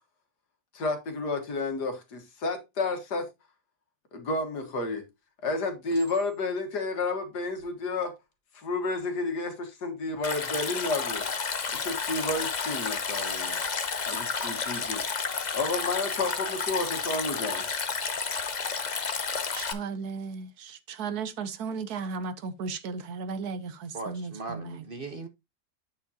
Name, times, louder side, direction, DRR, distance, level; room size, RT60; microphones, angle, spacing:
voice 1, 0.7-3.3 4.1-5.1 5.4-8.1 8.5-11.3 11.7-13.6 14.1-15.0 15.5-17.7, left 3 dB, 80° left, 2.0 m, -31 dB
Chink clink, 5.9-6.7 7.4-7.7, right 4 dB, 90° right, 3.7 m, -54 dB
Stream, 10.2-19.7, left 5 dB, 35° left, 0.7 m, -31 dB
voice 2, 19.6-24.8, right 5 dB, 75° right, 1.4 m, -35 dB
voice 3, 23.9-25.3, right 3 dB, 45° right, 0.8 m, -38 dB
8.4 x 7.0 x 2.7 m
omnidirectional pair, 1.7 m